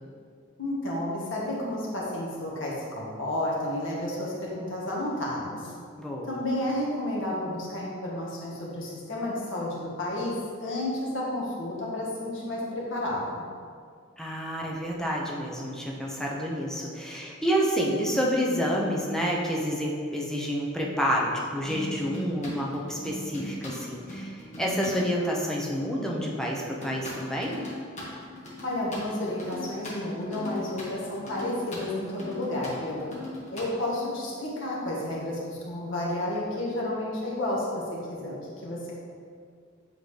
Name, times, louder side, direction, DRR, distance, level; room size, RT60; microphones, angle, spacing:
voice 1, 0.6-5.7 6.3-10.3 10.6-13.4 28.6-33.0 33.5-37.8 38.1-38.3 38.6-38.9, left 1 dB, 70° left, -5 dB, 1.5 m, -31 dB
voice 2, 6.0-6.4 14.2-27.6, equal, 5° left, -3 dB, 0.8 m, -29 dB
sound 1, 21.6-25.0 26.8-33.7, left 1 dB, 35° left, 1.2 m, -39 dB
7.8 x 3.8 x 3.3 m, 2.2 s
head